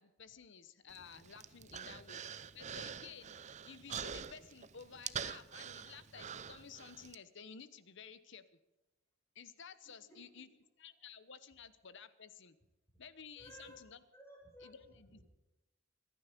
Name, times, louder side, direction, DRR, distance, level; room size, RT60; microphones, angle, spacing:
voice 1, 0.0-2.2 2.5-3.4 3.6-8.4 9.3-10.5 10.8-12.6 13.0-14.0 14.6-15.2, left 6 dB, 65° left, 14 dB, 1.0 m, -54 dB
Human voice, 0.9-7.2, right 7 dB, 35° right, 0.6 m, -46 dB
voice 2, 1.6-2.0 9.8-10.4 13.3-13.8 14.1-15.2, equal, 10° left, -5 dB, 5.8 m, -58 dB
26.0 x 9.6 x 5.2 m, 1.0 s
head